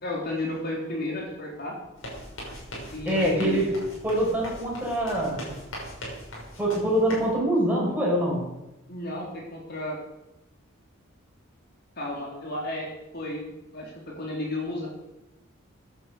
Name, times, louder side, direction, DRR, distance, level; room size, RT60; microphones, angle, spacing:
voice 1, 0.0-1.8 2.9-3.7 8.9-10.0 12.0-12.9 13.1-13.4 13.7-14.9, left 1 dB, 50° left, -2 dB, 3.5 m, -32 dB
sound 1, 1.9-7.3, equal, 75° left, 6.3 m, -39 dB
voice 2, 3.1-3.7 4.0-5.5 6.6-8.4, right 1 dB, 10° right, -4 dB, 5.7 m, -24 dB
15.0 x 10.5 x 6.7 m, 0.94 s
head